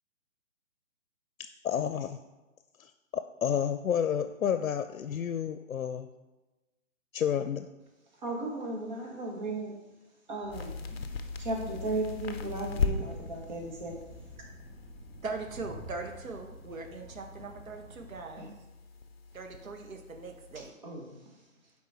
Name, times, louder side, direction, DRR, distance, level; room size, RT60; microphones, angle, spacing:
voice 1, 1.6-2.2 2.8-6.1 7.1-7.7, left 8 dB, 90° left, 9 dB, 0.6 m, -30 dB
voice 2, 8.2-9.7 10.3-11.1 11.4-13.9 18.4-18.5 20.8-21.1, right 2 dB, 35° right, -1 dB, 1.7 m, -35 dB
Train, 10.4-18.2, equal, 5° left, 0.6 m, -49 dB
sound 1, 10.5-20.7, left 5 dB, 50° left, 0.6 m, -39 dB
voice 3, 15.2-18.5 19.3-20.7, right 3 dB, 80° right, 4 dB, 1.4 m, -40 dB
7.4 x 4.4 x 4.4 m, 1.1 s
hypercardioid pair, 165°, 40 cm